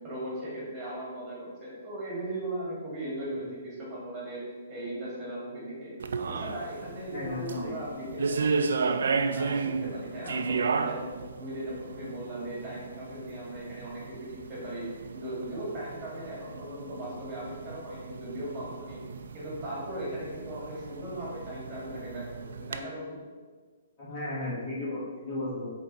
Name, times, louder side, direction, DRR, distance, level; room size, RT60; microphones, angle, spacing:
voice 1, 0.0-5.9 6.2-9.0 9.3-19.0 19.3-23.2, right 1 dB, 15° right, -7 dB, 1.8 m, -38 dB
sound 1, 6.0-22.8, right 5 dB, 75° right, 0.4 m, -34 dB
voice 2, 7.1-7.7 24.0-25.7, left 2 dB, 20° left, -8 dB, 1.1 m, -34 dB
8.1 x 3.5 x 4.1 m, 1.4 s
hypercardioid pair, 180°, 0 cm